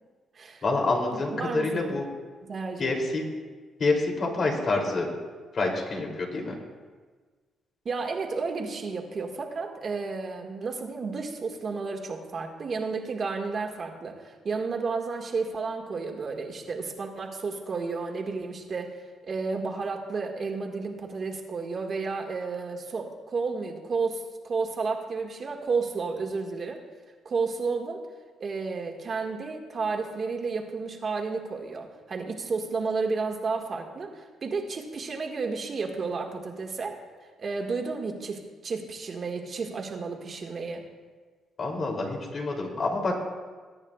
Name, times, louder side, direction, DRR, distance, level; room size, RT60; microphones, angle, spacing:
voice 1, 0.6-2.1 2.8-3.2 3.8-5.1 5.5-6.5 41.6-43.1, left 3 dB, 50° left, 0 dB, 2.9 m, -27 dB
voice 2, 1.1-2.0 2.4-2.9 7.9-19.0 19.2-26.8 27.3-28.0 28.4-37.0 37.4-40.8, right 4 dB, 45° right, 3 dB, 1.7 m, -32 dB
21.0 x 9.8 x 2.4 m, 1.4 s
cardioid pair, 90°, 0 cm